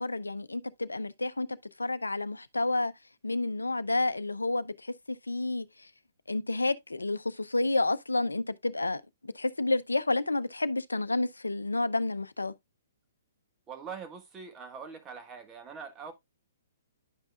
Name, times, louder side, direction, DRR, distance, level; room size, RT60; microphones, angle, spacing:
voice 1, 0.0-2.9 3.2-5.9 6.3-12.5, left 2 dB, 85° left, 0.6 m, -30 dB
voice 2, 13.7-16.1, right 6 dB, 20° right, 1.5 m, -43 dB
10.5 x 5.3 x 2.4 m
figure-of-eight pair, 120°, 0 cm